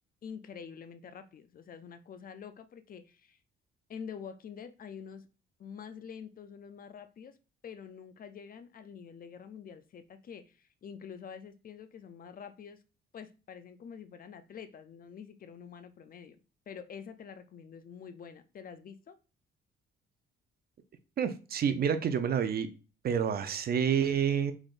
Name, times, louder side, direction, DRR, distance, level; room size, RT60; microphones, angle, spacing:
voice 1, 0.2-3.4 3.9-5.3 5.6-7.4 7.6-12.8 13.1-16.4 16.7-19.2, left 7 dB, 45° left, 0.5 m, -47 dB
voice 2, 21.2-22.7 23.0-24.5, right 7 dB, 50° right, 0.5 m, -28 dB
3.8 x 3.4 x 2.5 m
cardioid pair, 90°, 20 cm